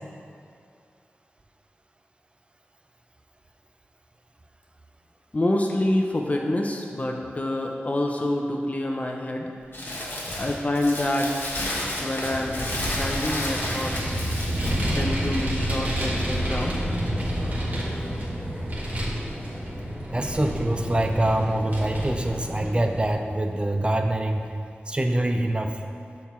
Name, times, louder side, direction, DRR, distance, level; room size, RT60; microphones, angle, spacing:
voice 1, 5.3-9.5 10.4-11.3 12.0-14.3 14.9-16.9, left 1 dB, 35° left, 1 dB, 0.5 m, -27 dB
Crumpling crinkling, 9.7-14.9, left 1 dB, 60° left, 1.2 m, -31 dB
Vehicle, 12.2-23.1, equal, 40° right, 1.4 m, -29 dB
voice 2, 20.1-24.5 24.9-25.7, right 1 dB, 25° right, 5 dB, 0.5 m, -25 dB
5.7 x 4.3 x 4.3 m, 2.5 s
cardioid pair, 50°, 4 cm